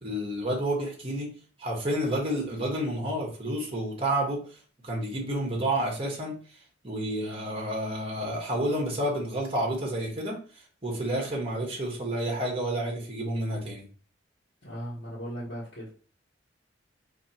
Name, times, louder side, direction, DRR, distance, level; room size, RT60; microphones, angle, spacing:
voice 1, 0.0-1.3 1.6-4.6 4.8-6.4 6.8-10.4 10.8-13.8, right 1 dB, 30° right, 0 dB, 1.1 m, -30 dB
voice 2, 14.6-16.0, equal, 65° left, -8 dB, 1.2 m, -37 dB
4.5 x 2.7 x 2.8 m, 0.40 s
head